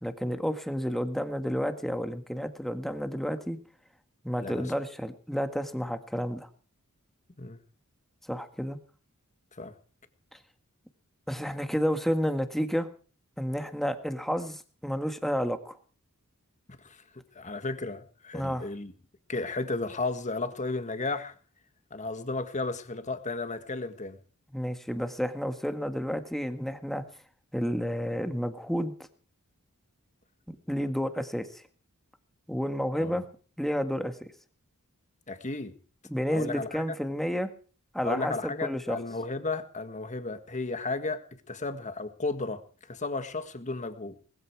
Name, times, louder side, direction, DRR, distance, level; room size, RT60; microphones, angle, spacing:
voice 1, 0.0-3.6 4.2-6.5 8.3-8.8 11.3-12.9 13.4-15.8 18.3-18.7 24.5-27.1 27.5-28.9 30.7-31.6 32.5-33.2 33.6-34.3 36.1-37.5 37.9-39.0, equal, ahead, 1.6 m, -30 dB
voice 2, 16.8-18.9 19.3-21.4 21.9-24.2 33.0-33.2 35.3-35.8 36.3-36.8 38.0-41.2 41.5-44.2, left 3 dB, 35° left, 1.7 m, -34 dB
20.0 x 14.5 x 4.7 m
head